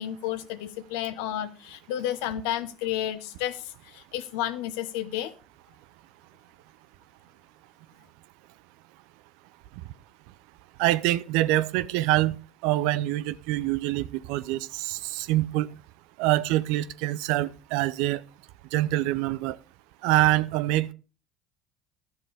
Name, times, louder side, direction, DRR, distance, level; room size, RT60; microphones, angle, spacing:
voice 1, 0.0-5.3, left 12 dB, 75° left, 0.9 m, -31 dB
voice 2, 10.8-12.4 12.6-15.7 16.2-18.2 18.7-19.6 20.0-20.9, right 16 dB, 70° right, 0.6 m, -25 dB
12.0 x 7.3 x 4.9 m
hypercardioid pair, 75°, 0 cm